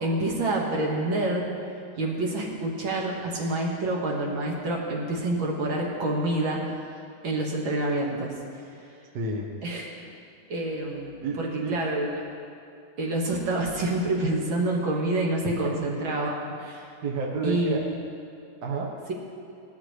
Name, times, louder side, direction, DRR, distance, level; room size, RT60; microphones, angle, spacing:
voice 1, 0.0-1.4 2.0-6.6 7.2-8.6 9.6-10.0 10.5-12.2 13.0-16.3 16.6-16.9 17.4-18.0, right 1 dB, 80° right, -2 dB, 2.5 m, -27 dB
voice 2, 9.1-9.5 11.2-11.8 15.6-15.7 17.0-17.8 18.6-18.9, right 3 dB, 60° right, 0 dB, 1.7 m, -29 dB
18.5 x 13.0 x 3.3 m, 2.7 s
omnidirectional pair, 2.2 m